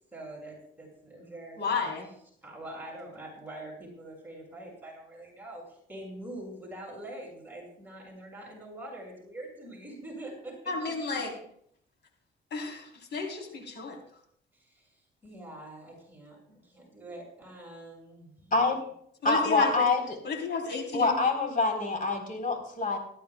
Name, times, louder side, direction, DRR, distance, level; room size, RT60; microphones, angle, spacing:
voice 1, 0.1-1.9 2.4-10.6 11.0-11.2 14.5-16.4 16.6-18.5, right 1 dB, 10° right, -2 dB, 6.5 m, -44 dB
voice 2, 1.6-2.1 10.7-11.3 12.5-14.0 19.2-19.9 20.2-21.2, left 4 dB, 60° left, 2 dB, 3.9 m, -32 dB
voice 3, 19.2-20.0 20.9-23.0, left 3 dB, 40° left, 3 dB, 4.0 m, -25 dB
18.5 x 13.5 x 2.4 m, 0.66 s
cardioid pair, 90°, 20 cm